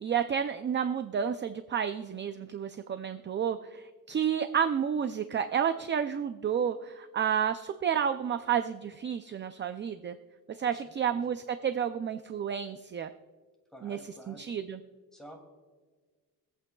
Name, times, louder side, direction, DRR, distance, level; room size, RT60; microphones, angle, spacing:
voice 1, 0.0-10.2 10.5-13.1 13.8-14.8, right 8 dB, 30° right, 9 dB, 0.5 m, -31 dB
voice 2, 10.6-11.3 13.7-14.5 15.1-15.4, equal, ahead, 1 dB, 2.5 m, -51 dB
24.0 x 8.5 x 2.3 m, 1.5 s
cardioid pair, 115°, 36 cm